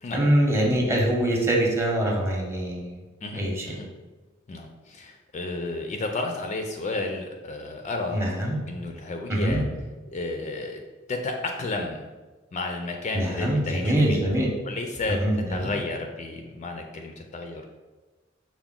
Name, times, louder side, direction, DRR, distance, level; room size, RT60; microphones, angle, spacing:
voice 1, 0.1-3.0 3.4-3.6 8.1-8.6 9.3-9.6 13.1-14.5 15.1-15.7, right 1 dB, 15° right, -2 dB, 0.7 m, -24 dB
voice 2, 3.2-3.9 4.5-8.3 8.7-9.6 10.1-10.8 11.1-12.1 12.5-14.2 14.6-15.2 15.5-17.7, left 2 dB, 35° left, 3 dB, 0.3 m, -32 dB
5.8 x 2.2 x 3.6 m, 1.2 s
head